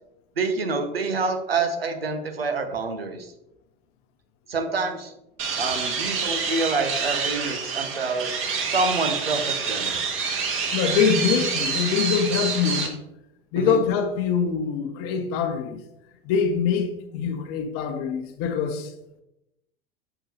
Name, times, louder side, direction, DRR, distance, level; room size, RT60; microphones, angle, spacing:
voice 1, 0.4-3.3 4.5-5.1 5.6-8.3 8.6-9.9 13.6-13.8, right 3 dB, 85° right, 0.9 m, -27 dB
sound 1, 5.4-12.9, right 5 dB, 45° right, 1.5 m, -27 dB
voice 2, 10.7-13.0 13.5-15.8 16.2-18.9, left 7 dB, 50° left, 1.0 m, -24 dB
6.8 x 5.8 x 2.9 m
figure-of-eight pair, 75°, 29 cm